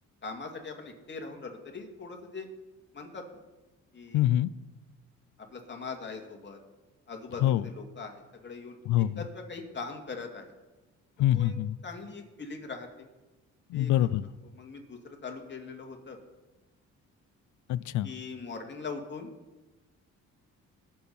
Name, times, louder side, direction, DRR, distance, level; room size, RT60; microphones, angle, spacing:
voice 1, 0.2-2.5 2.9-3.3 3.9-4.3 5.4-6.6 7.1-10.4 11.3-11.5 11.8-13.1 13.7-13.9 14.5-16.2 18.0-19.3, left 4 dB, 35° left, 3 dB, 2.4 m, -41 dB
voice 2, 4.1-4.5 7.4-7.7 8.9-9.2 11.2-11.8 13.7-14.3 17.7-18.1, left 13 dB, 75° left, 18 dB, 0.5 m, -25 dB
21.5 x 7.2 x 4.4 m, 1.1 s
cardioid pair, 90°, 30 cm